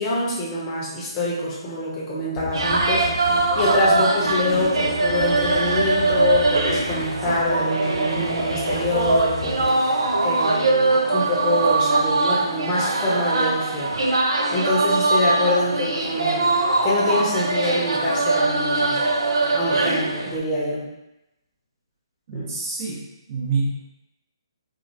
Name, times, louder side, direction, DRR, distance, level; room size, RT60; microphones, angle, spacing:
voice 1, 0.0-13.9 14.5-16.5 16.8-19.0 19.5-20.9 22.3-22.6, left 2 dB, 20° left, -6 dB, 0.8 m, -25 dB
sound 1, 2.4-9.7, left 3 dB, 70° left, 0.5 m, -34 dB
sound 2, 2.5-20.4, right 3 dB, 75° right, 0.4 m, -22 dB
voice 2, 22.3-23.0 23.3-23.7, right 4 dB, 40° right, -5 dB, 0.9 m, -26 dB
3.0 x 2.3 x 2.6 m, 0.91 s
figure-of-eight pair, 140°, 3 cm